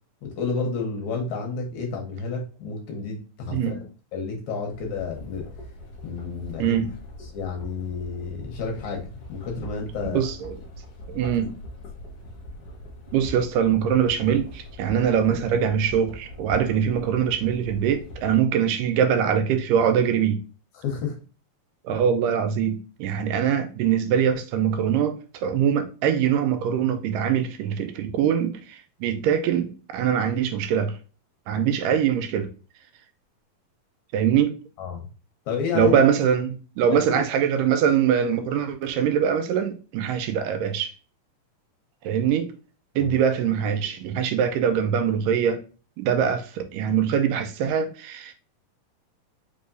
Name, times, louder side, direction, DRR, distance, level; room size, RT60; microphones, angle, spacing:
voice 1, 0.2-3.8 4.1-5.5 6.0-6.8 7.3-10.2 11.4-11.5 20.8-21.2 34.8-35.1 35.5-35.9 36.9-37.2 43.0-43.1, left 5 dB, 70° left, 2.0 m, -30 dB
sound 1, 4.6-18.3, left 1 dB, 50° left, 1.9 m, -42 dB
voice 2, 10.1-10.6 11.1-11.5 13.1-20.4 21.9-31.0 31.5-32.5 34.1-34.6 35.7-40.9 42.0-42.5 43.0-45.6 46.0-48.3, right 8 dB, 80° right, 2.2 m, -23 dB
5.2 x 3.4 x 2.5 m
omnidirectional pair, 4.0 m